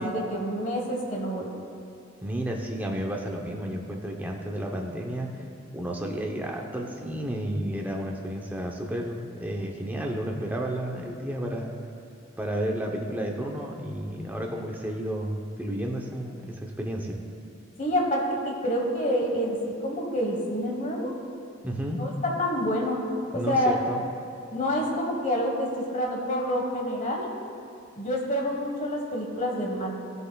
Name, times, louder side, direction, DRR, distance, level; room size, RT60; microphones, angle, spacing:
voice 1, 0.0-1.5 17.8-21.1 21.9-23.0 23.3-23.8 24.5-27.3 28.0-29.9, equal, 40° left, -1 dB, 1.3 m, -27 dB
voice 2, 2.2-5.3 5.7-11.7 12.4-17.2 21.6-22.0 23.3-24.0, right 1 dB, 10° right, 0 dB, 0.7 m, -32 dB
15.5 x 6.9 x 2.3 m, 2.5 s
head